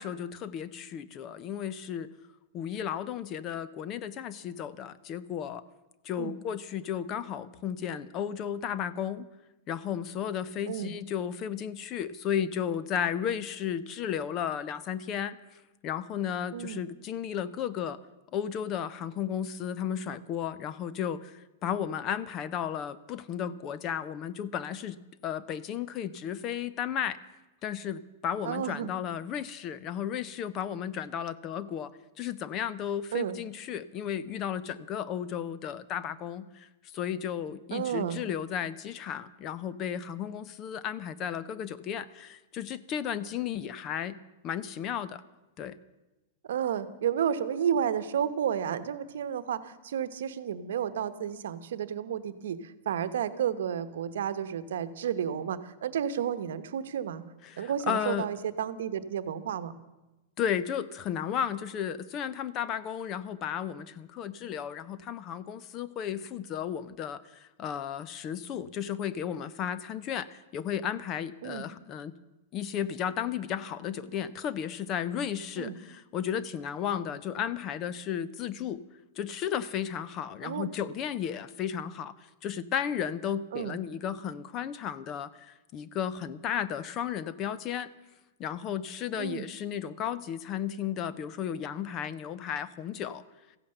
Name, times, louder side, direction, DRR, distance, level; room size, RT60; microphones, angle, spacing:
voice 1, 0.0-2.1 2.5-5.6 6.0-9.3 9.7-15.4 15.8-18.0 18.3-27.2 27.6-31.9 32.2-44.2 44.4-45.2 45.6-45.8 57.4-58.3 60.4-72.1 72.5-78.8 79.2-87.9 88.4-93.2, left 9 dB, 20° left, 16 dB, 0.5 m, -34 dB
voice 2, 16.5-16.8 28.4-28.9 33.1-33.4 37.7-38.2 46.4-57.2 57.6-59.7 71.4-71.7 75.6-75.8 80.4-80.7 83.5-83.8 89.2-89.5, right 9 dB, 70° right, 13 dB, 1.0 m, -31 dB
15.0 x 11.5 x 7.8 m, 1.0 s
supercardioid pair, 175°, 0 cm